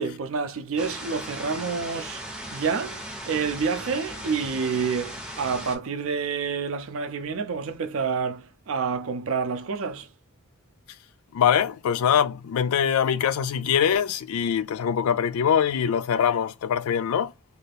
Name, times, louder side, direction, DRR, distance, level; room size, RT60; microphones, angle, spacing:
voice 1, 0.0-2.2 2.5-10.1, right 5 dB, 65° right, 0.4 m, -28 dB
sound 1, 0.8-5.8, equal, 5° right, 0.5 m, -37 dB
voice 2, 11.3-17.3, left 8 dB, 75° left, 0.3 m, -23 dB
2.6 x 2.4 x 3.3 m
head